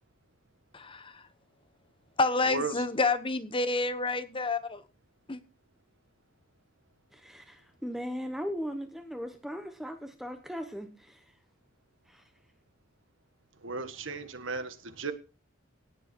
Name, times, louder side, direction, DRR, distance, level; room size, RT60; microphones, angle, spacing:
voice 1, 0.7-1.2 2.2-4.8 5.3-5.4, left 3 dB, 25° left, 1.1 m, -29 dB
voice 2, 2.4-2.8 13.6-15.1, right 4 dB, 75° right, 1.7 m, -35 dB
voice 3, 7.1-11.2 12.1-12.2, equal, ahead, 1.1 m, -38 dB
18.0 x 7.6 x 4.5 m
head